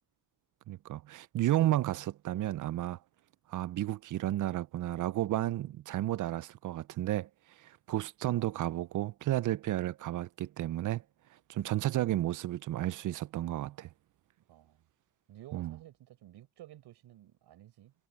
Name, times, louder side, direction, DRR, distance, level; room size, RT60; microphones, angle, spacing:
voice 1, 0.7-3.0 3.5-7.3 7.6-11.0 11.5-13.9 15.5-15.8, right 14 dB, 50° right, 0.5 m, -32 dB
voice 2, 14.5-14.9 15.3-17.9, right 13 dB, 75° right, 6.1 m, -53 dB
cardioid pair, 120°, 41 cm